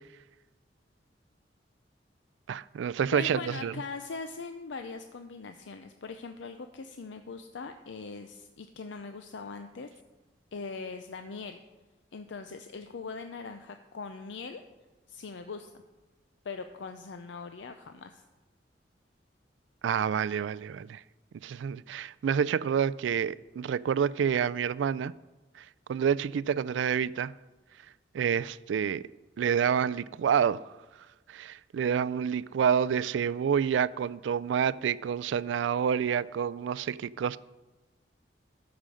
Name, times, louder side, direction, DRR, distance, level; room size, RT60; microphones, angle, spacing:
voice 1, 2.5-3.7 19.8-21.0 21.4-25.1 25.9-27.3 28.1-29.0 29.4-30.6 31.3-37.4, right 7 dB, 80° right, 0.3 m, -28 dB
voice 2, 3.1-9.9 10.5-11.6 12.1-14.6 15.1-15.7 16.4-18.2, left 4 dB, 75° left, 0.5 m, -41 dB
13.0 x 5.0 x 6.3 m
head